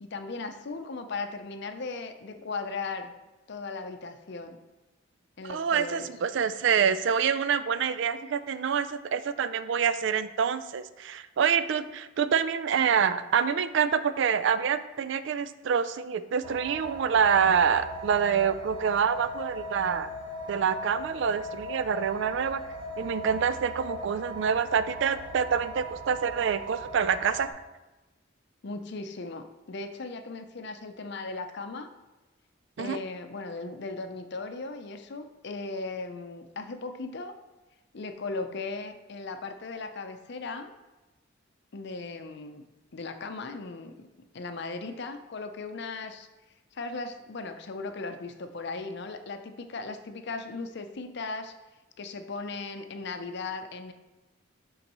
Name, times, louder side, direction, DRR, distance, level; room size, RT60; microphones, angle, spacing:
voice 1, 0.0-3.1 3.5-4.6 5.4-6.1 28.6-31.9 32.8-37.3 37.9-40.7 41.7-42.7 42.9-44.1 44.3-46.3 46.7-51.5 52.0-53.9, left 3 dB, 55° left, 7 dB, 0.6 m, -37 dB
voice 2, 5.5-20.1 20.5-22.6 23.0-27.5 32.8-33.0, right 7 dB, 60° right, 13 dB, 0.4 m, -26 dB
sound 1, 16.4-27.5, equal, 25° right, 1.1 m, -39 dB
11.5 x 3.8 x 3.0 m, 1.1 s
head